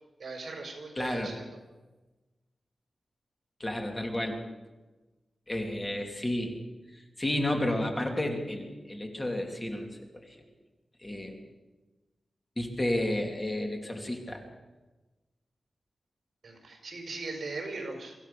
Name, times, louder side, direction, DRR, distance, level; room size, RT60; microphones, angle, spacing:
voice 1, 0.2-1.6 16.4-18.2, right 3 dB, 60° right, 4 dB, 5.3 m, -39 dB
voice 2, 1.0-1.3 3.6-4.4 5.5-6.5 6.9-9.9 10.3-10.4 11.0-11.3 12.6-14.4, left 1 dB, 20° left, 3 dB, 2.8 m, -31 dB
25.0 x 15.5 x 6.8 m, 1.2 s
wide cardioid pair, 140°, 0 cm